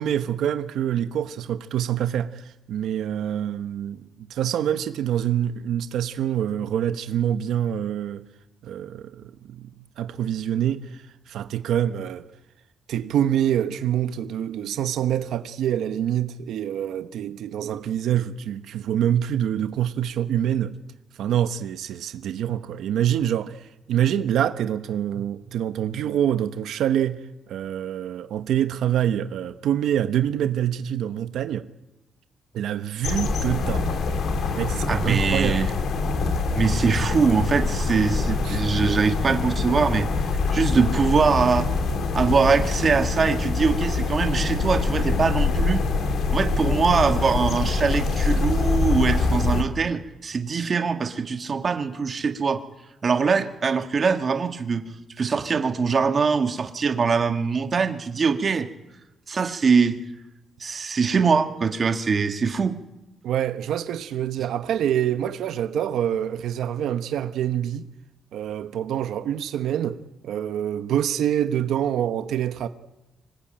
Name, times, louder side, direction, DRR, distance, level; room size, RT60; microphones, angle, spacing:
voice 1, 0.0-8.2 8.6-9.7 10.0-12.3 12.9-20.7 21.2-31.7 32.5-33.9 34.6-35.7 38.4-38.6 63.2-67.9 68.3-72.7, right 10 dB, 85° right, 1.1 m, -26 dB
sound 1, 33.0-49.6, left 4 dB, 60° left, 3.1 m, -24 dB
voice 2, 34.9-35.7 36.5-40.1 40.5-41.7 42.1-45.8 46.3-52.6 53.0-54.8 55.2-58.7 59.3-59.9 60.6-62.7, right 5 dB, 35° right, 1.5 m, -22 dB
25.5 x 20.0 x 9.0 m
cardioid pair, 165°, 0 cm